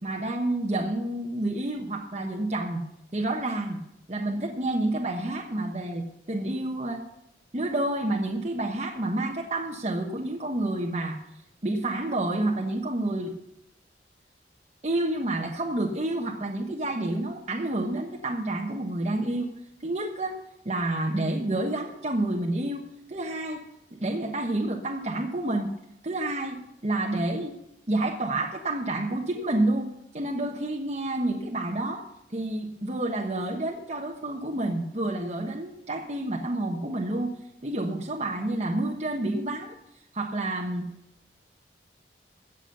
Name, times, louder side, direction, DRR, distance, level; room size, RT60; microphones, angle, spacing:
voice 1, 0.0-2.8 3.1-3.8 4.1-7.0 7.5-11.2 11.6-13.3 14.8-19.5 19.8-20.4 20.6-22.8 23.1-23.6 23.9-25.7 26.0-27.5 27.9-32.0 32.3-37.3 37.6-39.7 40.1-40.9, right 1 dB, 40° right, 0 dB, 1.2 m, -29 dB
15.5 x 7.2 x 6.8 m, 0.82 s
head